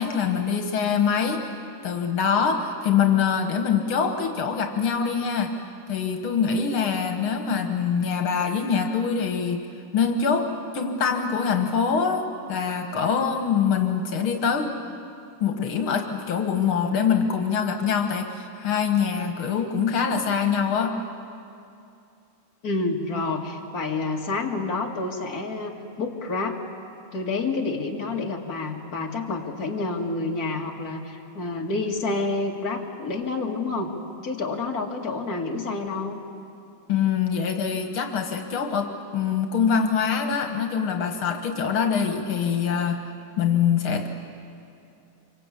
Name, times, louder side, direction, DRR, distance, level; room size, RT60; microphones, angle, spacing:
voice 1, 0.0-1.5 1.8-5.5 5.9-9.7 9.9-10.5 10.7-14.8 15.4-21.0 36.9-43.0 43.4-44.1, left 6 dB, 80° left, 5 dB, 2.3 m, -24 dB
voice 2, 22.6-26.6 27.1-33.9 34.2-36.2, left 3 dB, 45° left, 0 dB, 2.6 m, -28 dB
27.0 x 24.0 x 8.4 m, 2.6 s
omnidirectional pair, 2.3 m